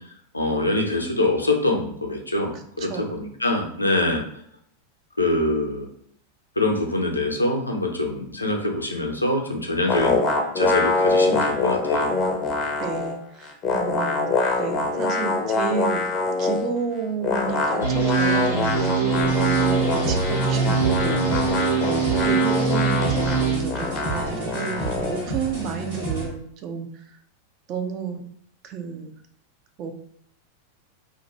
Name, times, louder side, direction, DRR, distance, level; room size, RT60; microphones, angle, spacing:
voice 1, 0.3-4.2 5.2-5.9 6.6-10.2 10.6-12.1, left 2 dB, 85° left, 2 dB, 0.4 m, -24 dB
voice 2, 2.8-3.1 12.8-14.3 14.6-16.0 16.4-26.9 27.7-28.2 28.6-29.1 29.8-29.9, right 6 dB, 35° right, 5 dB, 0.4 m, -31 dB
sound 1, 9.9-13.2 13.4-16.7 17.2-25.2, left 3 dB, 30° left, 0.5 m, -24 dB
sound 2, 17.8-23.6, right 5 dB, 80° right, 1.2 m, -23 dB
sound 3, 19.1-26.3, right 2 dB, 55° right, 1.2 m, -31 dB
2.3 x 2.1 x 3.0 m, 0.67 s
figure-of-eight pair, 90°, 0 cm